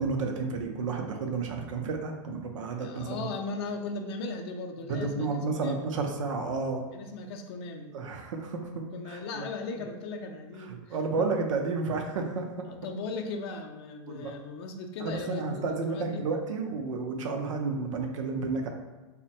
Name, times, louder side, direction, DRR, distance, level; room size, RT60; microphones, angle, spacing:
voice 1, 0.0-3.3 4.9-6.8 7.9-9.5 10.6-12.7 14.1-14.3 15.0-18.7, right 4 dB, 90° right, 3 dB, 0.5 m, -31 dB
voice 2, 2.8-5.9 6.9-7.9 8.9-11.0 12.7-16.2, left 3 dB, 55° left, 4 dB, 0.4 m, -38 dB
3.2 x 2.1 x 2.7 m, 1.2 s
supercardioid pair, 140°, 16 cm